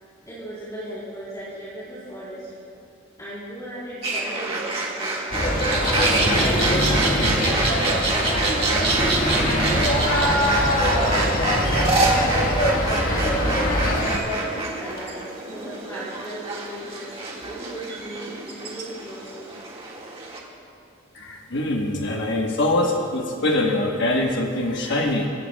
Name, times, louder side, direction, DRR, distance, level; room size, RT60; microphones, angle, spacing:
voice 1, 0.3-2.5 3.2-5.6 6.3-9.1 9.7-12.1 12.9-17.2 17.5-19.6, equal, 20° left, -10 dB, 3.4 m, -36 dB
sound 1, 4.0-20.4, right 3 dB, 30° right, 1.8 m, -27 dB
sound 2, 5.3-14.2, equal, 40° left, 1.5 m, -22 dB
voice 2, 21.1-25.3, left 1 dB, 55° left, 1 dB, 1.1 m, -23 dB
23.5 x 15.5 x 2.3 m, 2.5 s
head